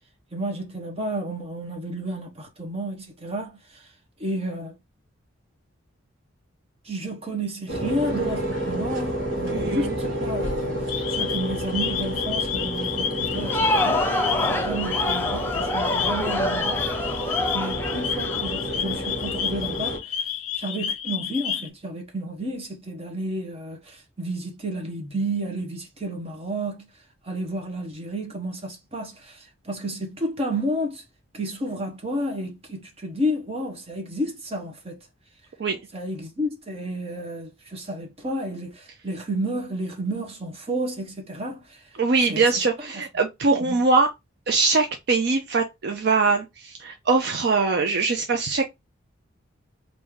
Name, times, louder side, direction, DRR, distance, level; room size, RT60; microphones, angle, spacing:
voice 1, 0.3-3.9 4.2-4.8 6.8-14.0 14.4-26.9 27.2-31.0 31.3-35.0 35.9-41.9 42.3-42.5 42.9-43.0 43.6-43.8, right 1 dB, 30° right, 0.9 m, -31 dB
sound 1, 7.7-20.0, equal, 70° right, 1.2 m, -30 dB
voice 2, 9.5-9.9 35.6-35.8 42.0-44.1 44.5-48.6, right 4 dB, 50° right, 0.5 m, -22 dB
sound 2, 10.9-21.7, left 9 dB, 80° left, 0.5 m, -30 dB
Crowd, 13.2-19.1, left 1 dB, 10° left, 0.4 m, -27 dB
3.1 x 2.6 x 3.5 m
head